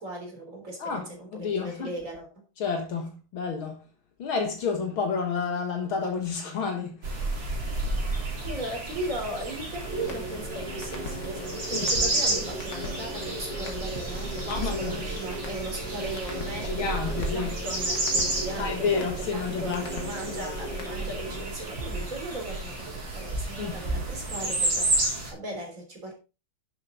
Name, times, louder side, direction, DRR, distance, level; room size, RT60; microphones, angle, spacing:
voice 1, 0.0-2.4 8.4-22.9 23.1-25.0 25.3-26.1, right 1 dB, 35° right, 4.0 m, -37 dB
voice 2, 0.8-1.9 2.6-3.8 4.2-7.2 11.7-11.9 14.5-15.0 16.6-17.6 18.6-19.8 23.6-23.7, left 5 dB, 70° left, 2.4 m, -30 dB
sound 1, 7.0-25.3, right 2 dB, 60° right, 4.5 m, -31 dB
sound 2, 9.8-21.4, equal, 55° left, 3.0 m, -38 dB
10.5 x 7.8 x 3.8 m
omnidirectional pair, 2.4 m